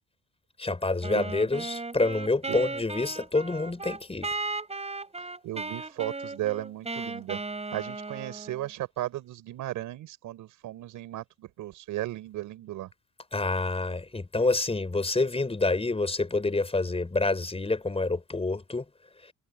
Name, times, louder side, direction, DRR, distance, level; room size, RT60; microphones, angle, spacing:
voice 1, 0.6-4.3 13.3-18.8, left 3 dB, 20° left, 4.9 m, -27 dB
Wind instrument woodwind instrument, 1.0-8.7, right 3 dB, 20° right, 7.6 m, -36 dB
voice 2, 5.2-7.4 7.7-12.9, right 14 dB, 90° right, 5.7 m, -35 dB
cardioid pair, 90°, 30 cm